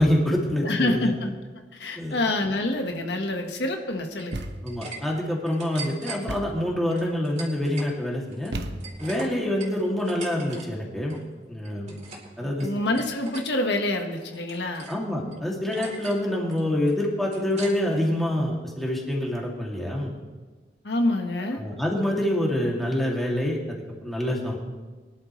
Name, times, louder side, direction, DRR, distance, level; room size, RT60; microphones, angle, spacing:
voice 1, 0.0-1.1 2.0-2.2 4.6-8.5 9.0-11.2 11.5-12.0 12.4-12.7 14.9-20.1 21.6-24.6, left 1 dB, ahead, -3 dB, 2.3 m, -26 dB
voice 2, 0.6-1.4 1.7-4.4 12.4-14.9 20.8-21.6, left 2 dB, 80° left, 4 dB, 1.3 m, -27 dB
sound 1, 4.1-5.0 5.3-6.2 6.9-7.9 8.3-10.6 10.9-11.2 11.6-12.3 12.6-13.4 13.9-15.0 15.3-15.4 15.7-16.2 16.5-18.0, right 3 dB, 40° right, 2.9 m, -41 dB
Thump thud, 4.3-4.9 6.3-6.7 8.5-9.2, right 1 dB, 75° right, 1.0 m, -34 dB
23.0 x 11.0 x 3.1 m, 1.3 s
head